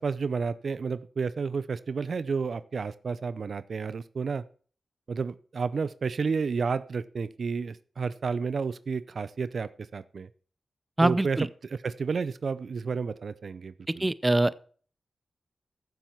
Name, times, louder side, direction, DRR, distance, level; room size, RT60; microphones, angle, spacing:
voice 1, 0.0-4.4 5.1-10.3 11.0-11.4 11.7-14.1, right 5 dB, 70° right, 0.5 m, -31 dB
voice 2, 11.0-11.5 14.0-14.7, right 2 dB, 25° right, 0.6 m, -24 dB
15.0 x 7.2 x 4.5 m
cardioid pair, 45°, 0 cm